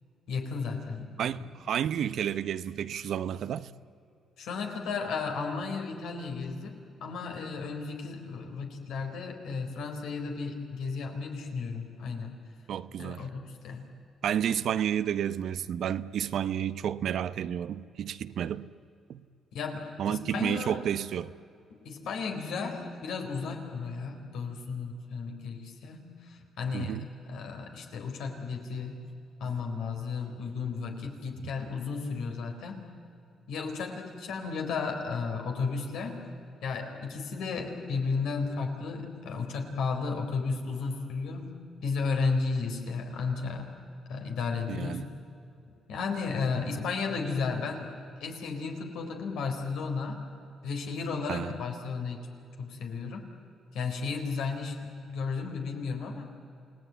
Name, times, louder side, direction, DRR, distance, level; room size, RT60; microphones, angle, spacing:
voice 1, 0.3-1.5 4.4-12.3 13.0-13.8 19.5-20.8 21.7-29.0 29.4-32.9 33.5-36.2 36.6-41.6 41.8-43.7 44.1-45.1 45.9-47.9 48.2-50.2 50.6-52.3 52.6-53.2 53.7-56.3, left 4 dB, 80° left, 4.0 m, -34 dB
voice 2, 1.2-3.7 12.7-13.2 14.2-18.7 19.1-19.2 20.0-21.3 26.7-27.1 44.7-45.0 51.3-51.5, right 9 dB, 70° right, 0.8 m, -31 dB
29.0 x 18.5 x 9.4 m
cardioid pair, 90°, 0 cm